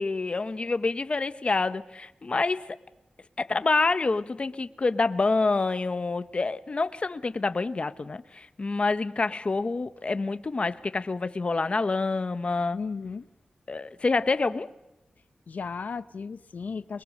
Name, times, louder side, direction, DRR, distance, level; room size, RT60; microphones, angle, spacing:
voice 1, 0.0-2.8 3.4-12.8 13.7-14.7, left 3 dB, 45° left, 1.1 m, -27 dB
voice 2, 12.7-13.3 15.5-17.0, left 5 dB, 85° left, 0.7 m, -35 dB
28.5 x 21.5 x 6.6 m
wide cardioid pair, 105°, 3 cm